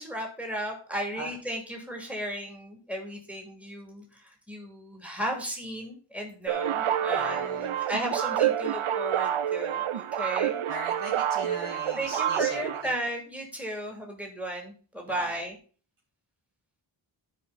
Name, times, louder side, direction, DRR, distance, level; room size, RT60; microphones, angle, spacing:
voice 1, 0.0-10.6 12.0-15.6, right 1 dB, 5° right, 1 dB, 2.9 m, -35 dB
sound 1, 6.5-12.8, right 10 dB, 75° right, 0.6 m, -28 dB
voice 2, 7.1-7.9 10.7-12.9 15.1-15.5, right 2 dB, 40° right, -6 dB, 2.9 m, -39 dB
12.5 x 5.0 x 4.1 m, 0.40 s
wide cardioid pair, 55°, 49 cm